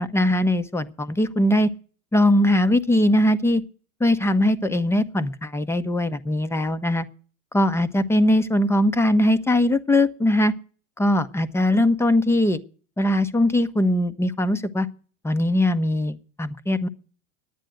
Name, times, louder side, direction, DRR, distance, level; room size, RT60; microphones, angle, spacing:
voice 1, 0.0-1.7 2.1-3.6 4.0-7.1 7.5-10.5 11.0-12.6 13.0-14.9 15.2-16.9, left 1 dB, 5° left, 11 dB, 0.6 m, -20 dB
10.5 x 9.1 x 7.7 m, 0.41 s
hypercardioid pair, 105°, 40 cm